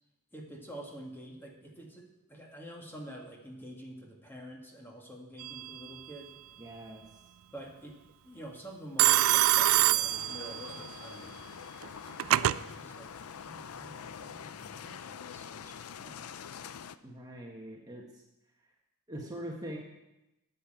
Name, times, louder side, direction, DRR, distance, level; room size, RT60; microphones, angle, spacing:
voice 1, 0.3-6.3 7.5-8.0 8.2-11.4 12.3-13.1 13.4-16.3, right 1 dB, 10° left, 0 dB, 1.9 m, -47 dB
Telephone, 5.4-5.9 9.0-10.8 11.8-12.6, right 14 dB, 65° right, 0.3 m, -25 dB
voice 2, 6.6-7.0 17.0-18.0 19.1-19.8, equal, 20° right, -1 dB, 1.4 m, -42 dB
sound 1, 9.1-17.0, left 7 dB, 80° left, 0.5 m, -45 dB
9.8 x 6.7 x 9.0 m, 0.96 s
head